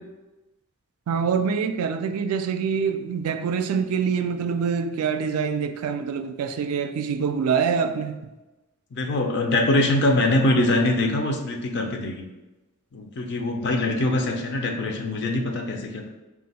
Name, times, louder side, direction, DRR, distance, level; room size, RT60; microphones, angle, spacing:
voice 1, 1.1-8.2, right 6 dB, 85° right, 0.3 m, -25 dB
voice 2, 8.9-12.2 12.9-16.1, left 1 dB, 55° left, 0.5 m, -23 dB
3.6 x 2.4 x 4.0 m
head